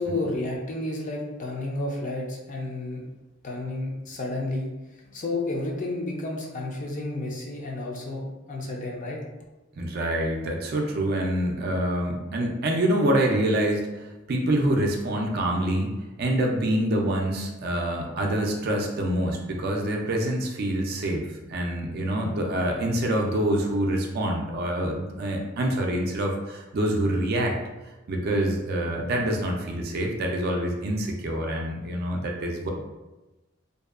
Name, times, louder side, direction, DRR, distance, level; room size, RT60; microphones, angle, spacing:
voice 1, 0.0-3.0 3.4-4.7 5.1-9.2, left 2 dB, 40° left, -1 dB, 0.4 m, -31 dB
voice 2, 9.8-27.6 28.1-32.7, right 1 dB, 50° right, 1 dB, 0.4 m, -26 dB
2.6 x 2.2 x 2.4 m, 1.1 s
head